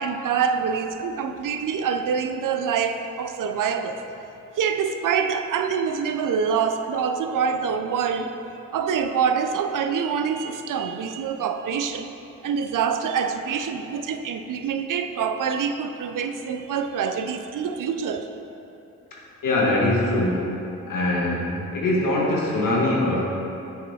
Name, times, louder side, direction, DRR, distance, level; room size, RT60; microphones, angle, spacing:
voice 1, 0.0-4.0 4.6-8.4 8.7-12.1 12.4-18.3, right 6 dB, 65° right, 7 dB, 0.5 m, -25 dB
voice 2, 19.4-20.5 20.9-21.5 21.7-23.2, left 1 dB, 70° left, -4 dB, 1.4 m, -22 dB
8.4 x 3.1 x 4.1 m, 2.8 s
supercardioid pair, 50°, 35 cm